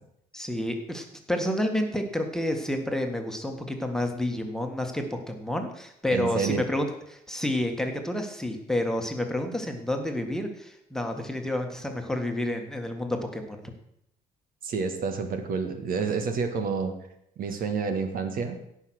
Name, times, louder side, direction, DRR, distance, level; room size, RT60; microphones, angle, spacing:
voice 1, 0.3-13.7, left 1 dB, 5° left, 4 dB, 1.7 m, -30 dB
voice 2, 6.1-6.6 14.6-16.9 17.4-18.6, right 5 dB, 60° right, 7 dB, 1.7 m, -29 dB
16.5 x 5.8 x 6.4 m, 0.77 s
cardioid pair, 110°, 17 cm